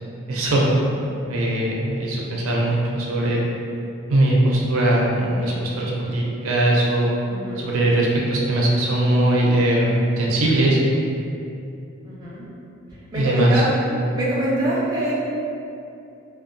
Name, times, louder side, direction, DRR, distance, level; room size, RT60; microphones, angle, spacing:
voice 1, 0.3-0.7 1.3-3.4 4.1-7.1 7.6-10.8 13.1-13.6, right 1 dB, 85° right, -3 dB, 0.5 m, -20 dB
voice 2, 7.3-7.7 12.0-12.5 13.1-13.8 14.1-15.1, right 1 dB, 20° right, -8 dB, 0.5 m, -24 dB
2.8 x 2.2 x 2.6 m, 2.7 s
head